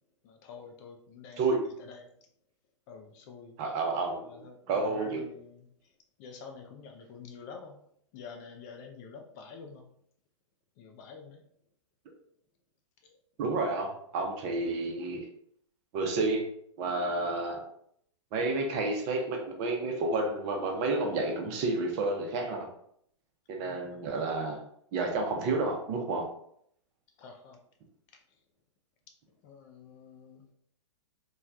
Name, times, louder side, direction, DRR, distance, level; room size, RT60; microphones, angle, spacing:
voice 1, 0.2-1.4 1.8-2.0 2.9-3.6 4.3-5.7 6.2-7.8 8.1-9.8 10.8-11.4 13.0-13.1 23.5-24.0 27.2-27.6 29.4-30.4, left 5 dB, 35° left, 3 dB, 0.4 m, -48 dB
voice 2, 3.6-4.4 4.7-5.2 13.4-15.2 15.9-16.5 16.8-17.6 18.3-22.7 23.5-24.6 24.9-26.3, right 3 dB, 35° right, 2 dB, 0.7 m, -30 dB
3.1 x 2.3 x 2.4 m, 0.68 s
hypercardioid pair, 115°, 16 cm